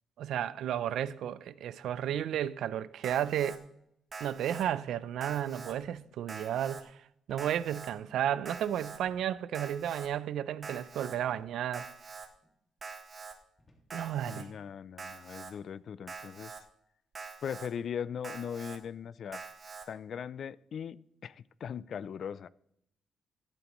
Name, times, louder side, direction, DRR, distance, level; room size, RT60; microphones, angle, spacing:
voice 1, 0.2-3.6 4.2-7.0 7.3-11.9 13.9-14.5, right 10 dB, 75° right, 0.4 m, -33 dB
Alarm, 3.0-3.6 4.1-4.7 5.2-5.7 6.3-6.8 7.4-7.9 8.5-9.0 9.5-10.1 10.6-11.2 11.7-12.3 12.8-13.3 13.9-14.4 15.0-15.5 16.1-16.6 17.2-17.7 18.2-18.8 19.3-19.9, right 4 dB, 30° right, 1.1 m, -45 dB
sound 1, 5.8-6.1 6.4-6.5 7.3-7.6 9.1-9.4 10.1-10.3 11.3-11.6 12.4-12.6 13.6-14.0, left 1 dB, 20° left, 1.8 m, -62 dB
voice 2, 14.3-16.6 17.4-19.4 19.9-22.5, left 8 dB, 50° left, 0.3 m, -39 dB
12.5 x 11.5 x 3.0 m
cardioid pair, 170°, 0 cm